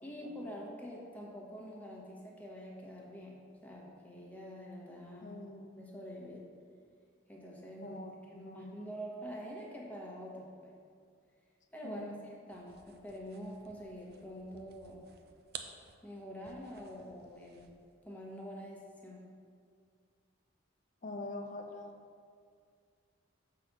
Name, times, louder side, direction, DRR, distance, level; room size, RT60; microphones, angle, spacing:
voice 1, 0.0-5.4 5.8-6.5 7.3-8.0 8.3-10.7 11.7-12.2 12.5-15.1 16.0-17.7 18.0-19.2, equal, 10° left, -2 dB, 1.0 m, -46 dB
voice 2, 5.2-5.8 7.8-8.7 11.8-12.2 21.0-21.9, left 2 dB, 40° left, 3 dB, 0.7 m, -44 dB
sound 1, 12.5-17.9, right 7 dB, 50° right, 0.5 m, -53 dB
6.8 x 3.9 x 5.9 m, 2.2 s
head